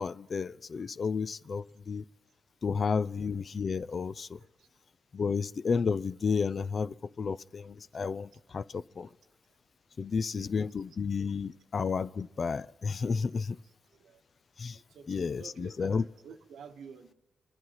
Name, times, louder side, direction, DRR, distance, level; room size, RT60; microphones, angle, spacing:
voice 1, 0.0-2.0 2.6-4.4 5.1-9.1 10.0-13.6 14.6-14.8 15.1-16.1, left 5 dB, 50° left, 18 dB, 0.4 m, -32 dB
voice 2, 10.1-10.5 14.0-14.2 14.7-17.1, right 6 dB, 80° right, 6 dB, 1.0 m, -51 dB
24.5 x 10.5 x 5.7 m, 1.1 s
supercardioid pair, 55°, 0 cm